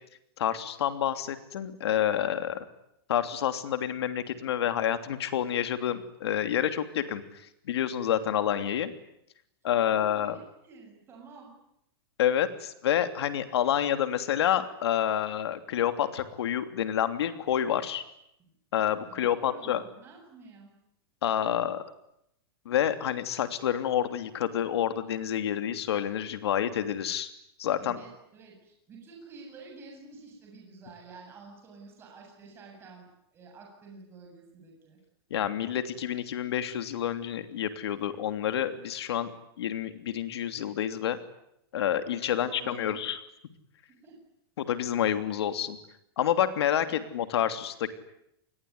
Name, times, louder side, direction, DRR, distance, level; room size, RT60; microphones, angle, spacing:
voice 1, 0.4-2.6 3.1-7.2 7.7-8.9 9.6-10.4 12.2-18.0 18.7-19.8 21.2-21.8 22.6-27.3 27.6-28.0 35.3-39.3 39.6-41.2 41.7-43.2 44.6-45.8 46.2-47.9, left 10 dB, 80° left, 9 dB, 3.1 m, -28 dB
voice 2, 9.7-11.5 18.4-18.5 19.1-20.7 27.8-35.0 42.3-43.1 43.9-44.2 46.8-47.0, right 4 dB, 15° right, 0 dB, 7.9 m, -50 dB
28.5 x 21.0 x 9.7 m, 0.78 s
supercardioid pair, 170°, 13 cm